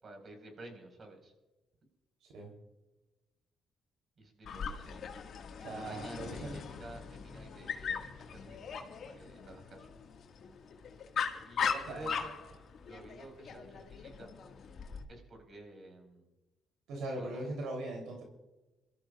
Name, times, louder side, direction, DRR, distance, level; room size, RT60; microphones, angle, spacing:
voice 1, 0.0-1.3 4.2-5.0 5.6-10.0 11.4-12.3 12.9-14.3 15.1-16.3 17.1-17.4, right 2 dB, 45° right, 4 dB, 4.9 m, -51 dB
Dog, 4.4-15.0, left 6 dB, 60° left, 1.9 m, -40 dB
voice 2, 5.6-6.5 11.9-12.2 16.9-18.2, right 2 dB, 85° right, 1 dB, 3.4 m, -40 dB
27.5 x 13.5 x 2.5 m, 1.1 s
cardioid pair, 90°, 0 cm